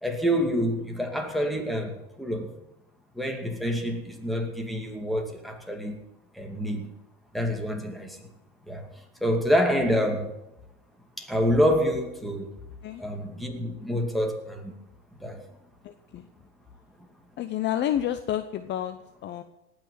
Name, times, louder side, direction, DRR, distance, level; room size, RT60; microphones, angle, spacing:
voice 1, 0.0-2.5 3.1-6.0 6.3-6.9 7.3-8.2 8.7-10.3 11.2-12.5 13.0-14.7 15.2-15.4, equal, ahead, 3 dB, 2.4 m, -27 dB
voice 2, 15.8-16.3 17.4-19.4, left 11 dB, 35° left, 9 dB, 0.8 m, -30 dB
18.5 x 6.2 x 9.4 m, 0.89 s
supercardioid pair, 115°, 33 cm